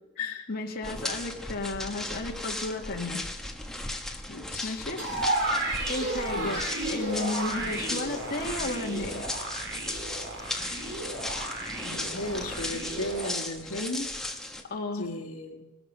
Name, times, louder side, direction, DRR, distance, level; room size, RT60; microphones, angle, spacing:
voice 1, 0.5-3.2 4.6-5.0 5.9-9.2 14.7-15.1, left 2 dB, 45° left, 0 dB, 1.8 m, -33 dB
sound 1, 0.8-14.6, left 1 dB, ahead, 1.3 m, -36 dB
voice 2, 4.3-4.7 6.3-6.7 11.8-14.1 14.9-15.6, left 2 dB, 70° left, 1 dB, 1.7 m, -35 dB
sound 2, 5.0-13.3, right 2 dB, 50° right, 3.6 m, -33 dB
19.5 x 13.0 x 5.5 m, 1.1 s
head